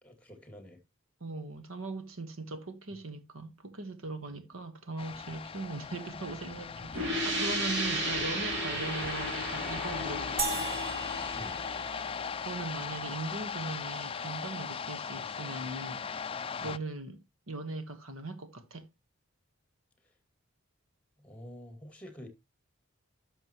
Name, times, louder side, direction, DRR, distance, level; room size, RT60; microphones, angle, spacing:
voice 1, 0.0-0.8 4.3-4.5 11.3-11.6 16.6-16.8 21.2-22.3, left 1 dB, 5° left, 2.2 m, -48 dB
voice 2, 1.2-10.7 12.1-16.3 16.6-18.9, right 2 dB, 80° right, 1.3 m, -40 dB
sound 1, 5.0-16.8, left 6 dB, 25° left, 0.4 m, -38 dB
sound 2, 6.9-12.4, right 1 dB, 55° right, 3.4 m, -34 dB
sound 3, 10.4-12.8, right 3 dB, 30° right, 1.5 m, -37 dB
11.0 x 6.6 x 3.0 m
head